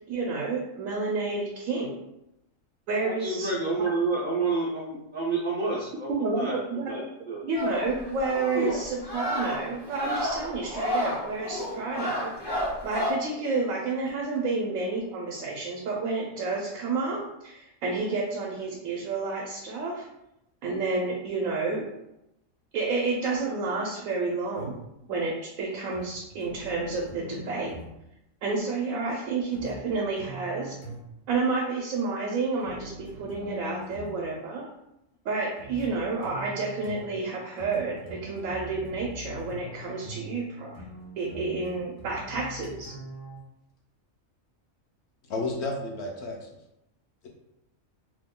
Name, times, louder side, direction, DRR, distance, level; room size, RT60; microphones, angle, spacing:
voice 1, 0.0-1.9 2.9-3.5 6.1-12.4 12.8-20.1 20.6-21.9 22.7-24.8 25.1-27.7 28.4-30.7 31.3-34.7 35.2-40.8 41.2-42.9, right 3 dB, 80° right, -2 dB, 1.0 m, -30 dB
voice 2, 3.0-6.6 6.9-7.0 7.3-7.4 8.5-8.7, right 3 dB, 60° right, -5 dB, 0.5 m, -29 dB
sound 1, 7.6-13.1, left 1 dB, 30° left, 0.5 m, -31 dB
sound 2, 24.6-25.0 25.9-28.0 29.5-31.3 32.6-34.3 35.6-43.4, equal, 90° left, 1.2 m, -43 dB
voice 3, 45.3-46.5, left 2 dB, 65° left, 0 dB, 0.8 m, -31 dB
2.9 x 2.1 x 3.6 m, 0.86 s
omnidirectional pair, 1.4 m